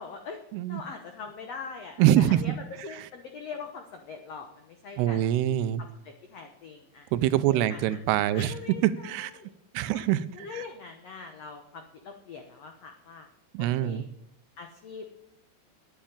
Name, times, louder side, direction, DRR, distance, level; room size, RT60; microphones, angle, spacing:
voice 1, 0.0-0.4 0.7-5.3 5.8-7.1 7.5-8.0 8.3-9.5 9.9-10.1 10.3-13.3 13.6-14.1 14.6-15.2, left 5 dB, 90° left, 5 dB, 1.4 m, -42 dB
voice 2, 2.0-2.6 5.0-5.8 7.1-8.5 8.8-9.3 9.7-10.2 10.5-10.6 13.5-14.0, right 12 dB, 85° right, 14 dB, 2.7 m, -24 dB
10.0 x 9.4 x 8.7 m, 0.73 s
omnidirectional pair, 4.7 m